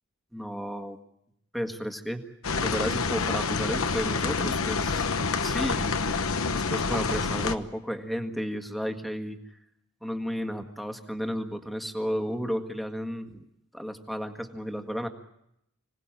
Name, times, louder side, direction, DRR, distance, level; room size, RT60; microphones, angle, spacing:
voice 1, 0.3-1.0 1.5-2.2 2.6-5.1 5.4-6.2 6.5-9.4 10.0-13.5 13.7-15.1, equal, ahead, 6 dB, 1.7 m, -33 dB
sound 1, 2.4-7.5, left 4 dB, 70° left, 1.1 m, -27 dB
26.0 x 18.5 x 8.9 m, 0.81 s
head